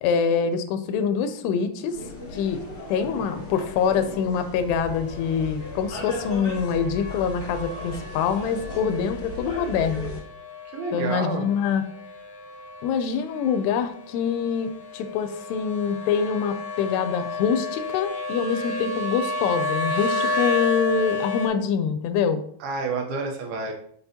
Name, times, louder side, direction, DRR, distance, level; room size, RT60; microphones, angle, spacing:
voice 1, 0.0-2.0 2.3-2.6 2.9-10.1 10.9-11.9 12.8-22.4, left 6 dB, 90° left, 9 dB, 2.7 m, -25 dB
sound 1, 1.8-21.5, left 2 dB, 70° left, 1.3 m, -33 dB
sound 2, 1.9-10.2, left 2 dB, 20° left, 1.5 m, -37 dB
voice 2, 10.7-11.5 22.6-23.7, right 4 dB, 75° right, 2 dB, 2.8 m, -29 dB
6.7 x 5.4 x 2.8 m, 0.64 s
omnidirectional pair, 4.7 m